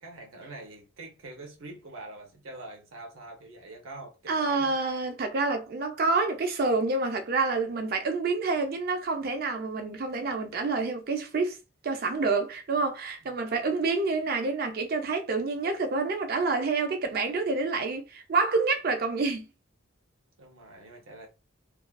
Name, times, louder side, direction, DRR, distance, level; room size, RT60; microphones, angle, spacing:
voice 1, 0.0-4.8 20.4-21.3, right 2 dB, 90° right, 0.7 m, -45 dB
voice 2, 4.3-11.6 11.8-19.4, right 3 dB, 50° right, 0.4 m, -28 dB
2.4 x 2.3 x 2.2 m
head